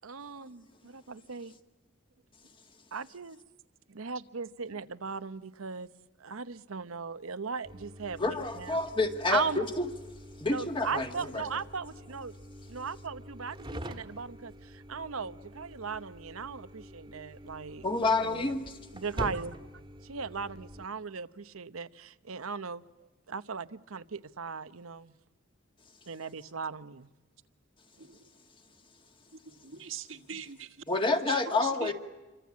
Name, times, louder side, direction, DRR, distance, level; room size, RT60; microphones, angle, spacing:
voice 1, 0.0-1.5 2.9-3.4 3.9-5.9 6.2-8.8 9.3-9.6 10.5-12.3 12.7-17.9 18.2-18.5 18.9-19.6 20.1-22.8 23.3-25.1 26.1-27.1, right 5 dB, 85° right, 0.9 m, -38 dB
sound 1, 7.6-20.9, equal, 20° right, 1.6 m, -45 dB
voice 2, 8.2-9.9 10.4-11.5 17.8-18.8 30.9-31.9, left 3 dB, 25° left, 1.9 m, -29 dB
voice 3, 19.1-19.4 23.0-23.1 28.0-28.3 29.4-30.8 31.3-31.9, right 6 dB, 65° right, 1.6 m, -43 dB
28.0 x 24.5 x 8.5 m
head